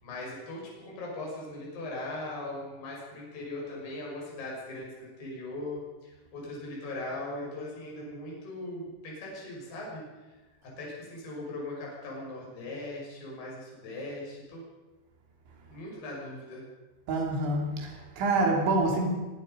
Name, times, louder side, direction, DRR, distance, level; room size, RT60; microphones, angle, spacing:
voice 1, 0.0-10.0 10.6-14.6 15.7-16.6, left 2 dB, 60° left, -3 dB, 8.1 m, -39 dB
voice 2, 17.1-19.1, right 2 dB, 85° right, 1 dB, 5.5 m, -27 dB
23.0 x 21.0 x 5.3 m, 1.2 s
omnidirectional pair, 5.3 m